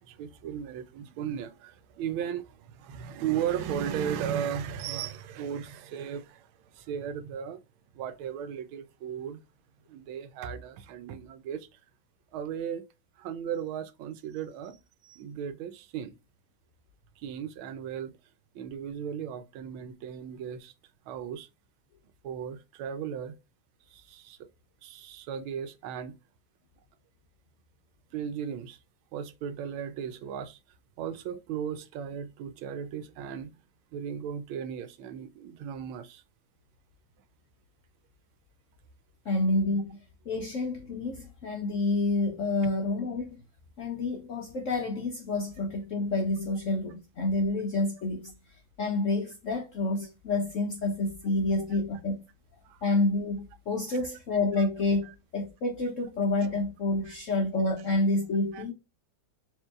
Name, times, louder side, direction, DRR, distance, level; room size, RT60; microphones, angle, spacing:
voice 1, 0.0-7.6 7.9-9.4 9.9-11.7 12.3-12.9 13.2-16.2 17.2-18.2 18.5-20.7 21.1-21.5 22.2-23.3 23.9-24.5 24.8-26.1 28.1-28.8 29.1-30.6 31.0-33.6 33.9-36.2 52.6-52.8 54.6-54.7 55.0-55.1 57.1-57.2 58.5-58.6, right 8 dB, 90° right, 1.4 m, -36 dB
voice 2, 39.3-40.0 40.3-43.3 43.8-48.3 48.8-52.2 52.8-55.1 55.3-58.7, left 2 dB, 65° left, 0.7 m, -28 dB
4.5 x 3.1 x 2.4 m
omnidirectional pair, 2.2 m